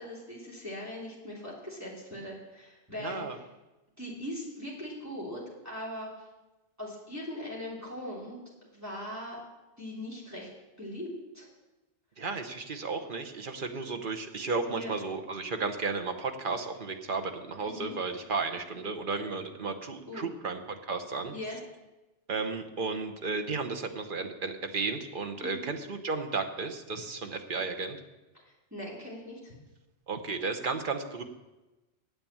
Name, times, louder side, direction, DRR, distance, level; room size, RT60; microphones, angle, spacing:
voice 1, 0.0-3.4 4.0-6.1 6.8-8.4 8.7-9.4 9.8-10.5 10.8-11.1 11.3-11.5 14.7-14.9 17.6-18.0 20.1-20.3 21.3-21.6 25.4-25.7 28.7-29.5, left 1 dB, 15° right, -6 dB, 3.0 m, -40 dB
voice 2, 3.0-3.4 12.2-21.3 22.3-28.0 30.1-31.2, right 4 dB, 50° right, 6 dB, 1.1 m, -33 dB
9.0 x 7.7 x 8.6 m, 1.1 s
omnidirectional pair, 1.2 m